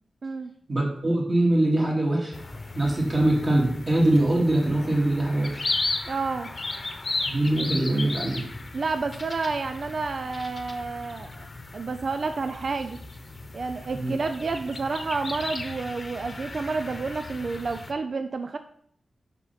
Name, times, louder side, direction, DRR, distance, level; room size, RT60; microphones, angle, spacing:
voice 1, 0.7-2.3 2.7-5.6 7.3-8.4 13.9-14.1, right 1 dB, 35° right, -4 dB, 2.3 m, -23 dB
sound 1, 2.3-17.9, left 2 dB, 35° left, 0.9 m, -35 dB
voice 2, 6.1-6.5 8.7-13.0 13.5-18.6, right 4 dB, 55° right, 9 dB, 0.4 m, -30 dB
5.9 x 5.5 x 5.7 m, 0.67 s
wide cardioid pair, 105°, 0 cm